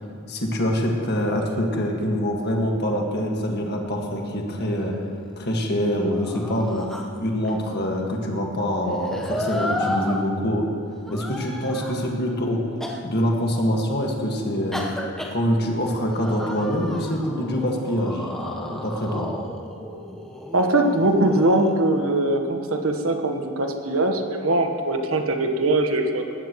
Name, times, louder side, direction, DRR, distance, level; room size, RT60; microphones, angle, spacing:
voice 1, 0.3-5.0 5.4-6.9 7.2-10.7 11.1-12.6 13.0-14.8 15.3-19.3, equal, 50° left, 0 dB, 1.8 m, -25 dB
sound 1, 4.2-5.5 5.9-7.5 8.9-10.2 11.1-12.1 12.8-13.0 14.7-15.3 16.1-21.7, left 1 dB, ahead, 1.0 m, -33 dB
voice 2, 20.5-26.2, right 2 dB, 75° right, 4 dB, 1.3 m, -21 dB
19.0 x 14.5 x 3.1 m, 2.4 s
head